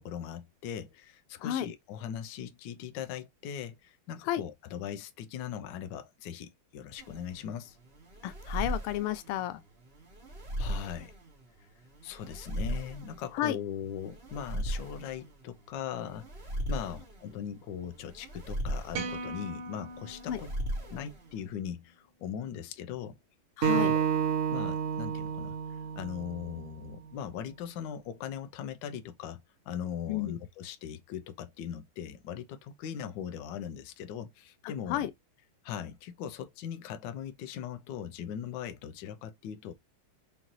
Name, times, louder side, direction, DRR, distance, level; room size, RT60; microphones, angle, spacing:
voice 1, 0.0-7.8 10.6-11.1 12.0-16.3 16.7-20.5 20.8-23.2 23.6-24.0 24.5-29.4 29.7-35.0 35.6-39.7, left 9 dB, 70° left, 1.2 m, -40 dB
voice 2, 1.4-1.7 4.2-4.4 8.2-9.6 13.3-13.6 20.3-20.4 23.6-23.9 30.1-30.4 34.6-35.1, left 12 dB, 90° left, 1.5 m, -32 dB
sound 1, 7.0-21.5, right 1 dB, 35° right, 1.2 m, -38 dB
sound 2, 18.9-21.3, right 3 dB, 85° right, 1.8 m, -40 dB
Acoustic guitar, 23.6-26.9, right 8 dB, 60° right, 0.8 m, -30 dB
5.1 x 2.7 x 3.0 m
omnidirectional pair, 2.4 m